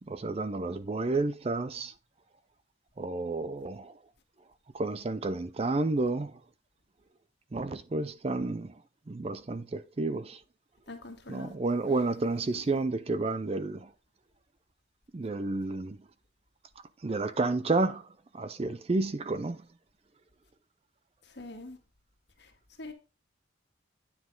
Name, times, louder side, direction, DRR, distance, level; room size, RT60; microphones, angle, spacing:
voice 1, 0.0-1.9 3.0-4.0 4.7-6.4 7.5-10.4 11.3-13.9 15.1-16.1 17.0-19.7, right 3 dB, 30° right, 0.4 m, -31 dB
voice 2, 10.9-11.5 12.7-12.8 21.3-21.8 22.4-22.5 22.8-22.9, left 2 dB, 55° left, 1.7 m, -43 dB
9.5 x 5.8 x 3.9 m
head